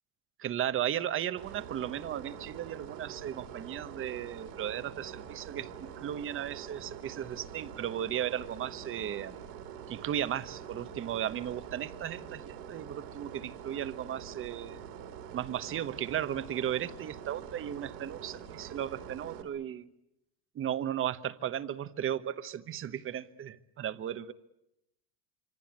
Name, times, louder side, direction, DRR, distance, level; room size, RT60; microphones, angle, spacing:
voice 1, 0.4-9.3 9.9-14.8 15.3-19.9 20.5-24.3, right 10 dB, 25° right, 1.1 m, -35 dB
sound 1, 1.4-19.4, right 8 dB, 80° right, 4.5 m, -45 dB
26.0 x 25.5 x 8.8 m
supercardioid pair, 140°, 46 cm